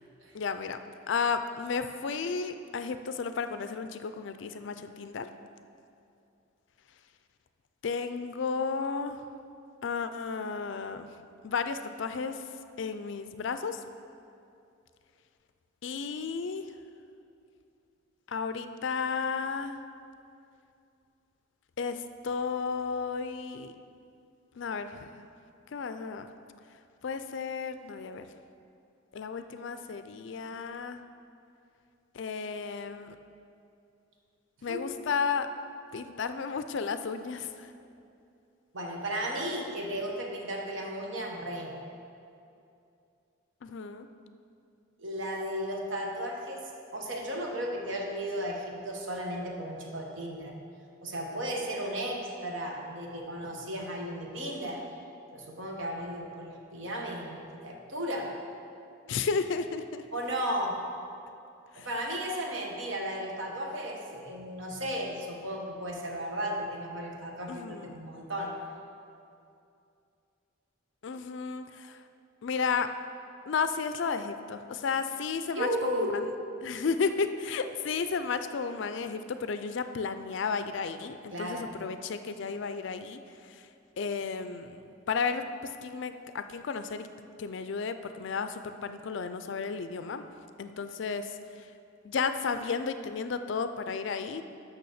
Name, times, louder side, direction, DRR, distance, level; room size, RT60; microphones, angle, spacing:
voice 1, 0.3-0.8 1.1-5.3 7.8-9.2 9.8-11.1 11.4-12.4 12.8-13.8 15.8-16.7 18.3-19.8 21.8-23.7 24.6-25.1 25.7-26.3 27.0-28.3 29.1-31.0 32.1-33.2 34.6-35.5 35.9-37.7 43.6-44.1 59.1-60.0 61.7-61.9 67.5-68.1 71.0-72.0 72.4-72.9 73.5-76.2 76.6-83.2 83.5-83.7 84.0-84.8 85.1-85.4 85.8-87.1 87.4-90.2 90.6-91.4 92.0-94.4, left 5 dB, 60° left, 10 dB, 0.4 m, -33 dB
voice 2, 38.7-41.7 45.0-50.5 51.0-54.8 55.3-58.3 60.1-60.8 61.8-68.6 75.5-76.2 81.3-81.7, equal, 65° right, 0 dB, 1.2 m, -35 dB
6.8 x 5.9 x 6.5 m, 2.6 s
head